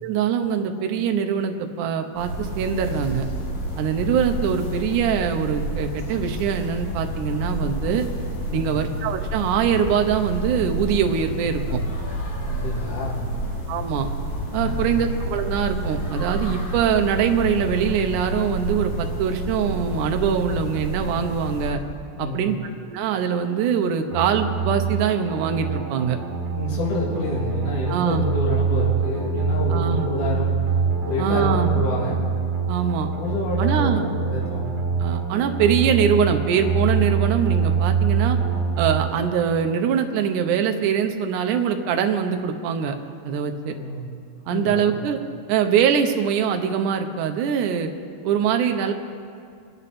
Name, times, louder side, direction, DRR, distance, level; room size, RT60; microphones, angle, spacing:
voice 1, 0.0-3.3 3.8-8.1 8.5-11.8 13.7-14.1 14.5-21.8 22.2-22.6 22.9-26.2 27.9-28.3 29.7-30.1 31.2-31.7 32.7-33.1 33.6-34.1 35.0-38.4 38.8-43.0 43.2-43.7 44.5-45.2 45.5-47.9 48.2-48.9, right 7 dB, 85° right, 6 dB, 2.3 m, -23 dB
sound 1, 2.2-21.7, right 1 dB, 40° left, 1.6 m, -29 dB
voice 2, 8.5-8.8 12.4-13.4 14.6-15.0 22.2-22.6 26.5-30.5 31.0-32.2 33.1-35.0 43.6-44.1 44.4-45.0, left 2 dB, 75° left, -5 dB, 4.0 m, -28 dB
sound 2, 24.1-39.1, right 6 dB, 55° right, 2.9 m, -24 dB
24.5 x 9.5 x 4.2 m, 2.3 s
omnidirectional pair, 3.5 m